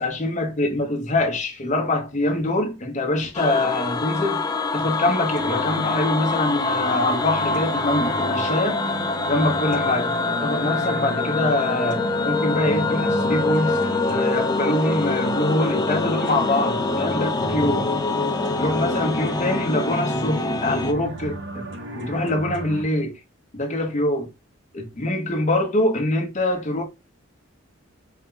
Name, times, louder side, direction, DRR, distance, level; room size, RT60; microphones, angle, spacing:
voice 1, 0.0-4.4 4.7-8.8 9.3-10.1 10.4-17.9 18.6-21.7 22.0-23.1 23.5-24.3 24.7-26.8, left 1 dB, 35° left, 0.9 m, -24 dB
sound 1, 3.3-20.9, left 3 dB, 20° left, 0.3 m, -25 dB
sound 2, 5.4-22.8, right 1 dB, 60° right, 0.9 m, -35 dB
4.5 x 2.2 x 3.7 m
head